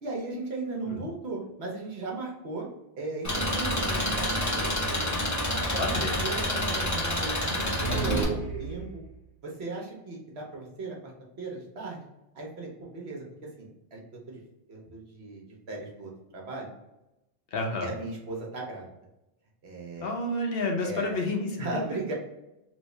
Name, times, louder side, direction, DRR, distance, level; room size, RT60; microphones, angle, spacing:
voice 1, 0.0-2.7 3.0-5.2 5.5-5.8 6.2-9.0 9.4-11.1 11.4-12.0 12.3-14.4 14.7-16.7 17.8-18.9 19.6-20.1 20.8-21.1 21.6-22.1, right 3 dB, 70° right, -1 dB, 1.2 m, -37 dB
Engine, 3.2-8.2, left 1 dB, 20° left, 0.7 m, -28 dB
voice 2, 5.8-6.2 17.5-17.9 20.0-21.5, left 2 dB, 65° left, 2 dB, 0.9 m, -29 dB
sound 1, 7.6-9.2, right 4 dB, 50° right, 1.4 m, -31 dB
3.1 x 2.6 x 3.2 m, 0.92 s
omnidirectional pair, 1.1 m